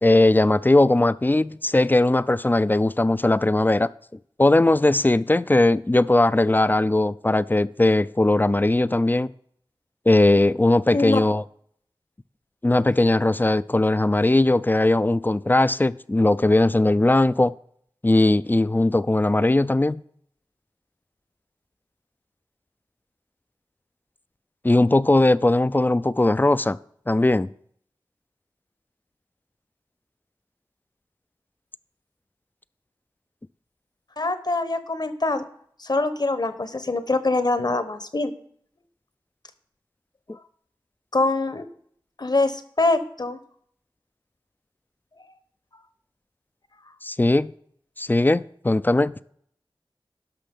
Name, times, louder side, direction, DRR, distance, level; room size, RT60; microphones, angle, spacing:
voice 1, 0.0-3.9 4.4-9.3 10.1-11.4 12.6-17.5 18.0-20.0 24.6-26.8 27.1-27.5 47.0-47.5 48.0-49.1, left 2 dB, 20° left, 0.3 m, -19 dB
voice 2, 34.2-35.4 35.8-38.3 41.1-41.7 42.2-43.4, left 2 dB, 50° left, 0.9 m, -24 dB
11.5 x 6.1 x 5.3 m
wide cardioid pair, 50°, 9 cm